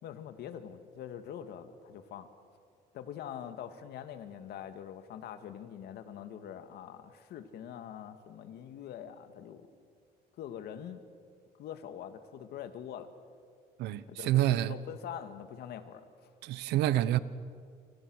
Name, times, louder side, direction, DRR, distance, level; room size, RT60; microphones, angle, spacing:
voice 1, 0.0-2.3 2.9-9.7 10.4-11.0 11.6-13.1 14.1-16.0, left 9 dB, 75° left, 2.1 m, -44 dB
voice 2, 13.8-14.7 16.4-17.2, right 14 dB, 85° right, 1.0 m, -27 dB
28.5 x 27.0 x 6.5 m
cardioid pair, 110°, 17 cm